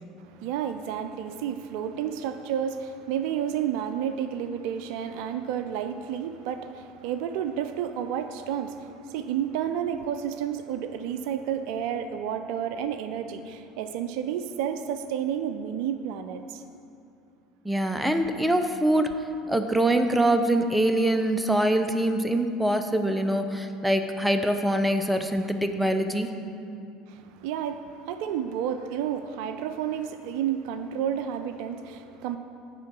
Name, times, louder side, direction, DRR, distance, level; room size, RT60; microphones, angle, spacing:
voice 1, 0.2-16.6 27.1-32.4, right 9 dB, 65° right, 9 dB, 0.4 m, -31 dB
voice 2, 17.6-19.1 19.5-26.3, right 1 dB, 5° right, 7 dB, 0.6 m, -24 dB
9.4 x 3.7 x 6.1 m, 2.5 s
hypercardioid pair, 70°, 0 cm